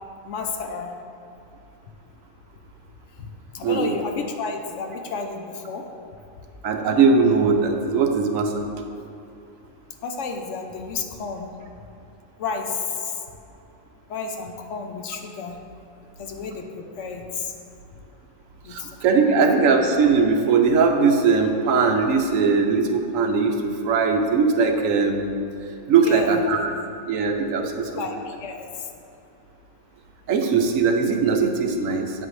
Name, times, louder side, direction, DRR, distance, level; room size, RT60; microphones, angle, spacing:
voice 1, 0.2-0.9 3.2-3.3 3.5-5.9 9.3-9.4 10.0-11.5 12.4-13.2 14.1-15.6 16.2-17.5 18.6-19.4 26.0-26.4 27.9-28.9, left 4 dB, 60° left, 4 dB, 0.9 m, -31 dB
voice 2, 3.6-3.9 6.6-8.5 18.7-25.4 25.9-28.1 30.3-32.3, right 4 dB, 65° right, 4 dB, 1.1 m, -20 dB
8.2 x 7.8 x 3.2 m, 2.7 s
omnidirectional pair, 1.6 m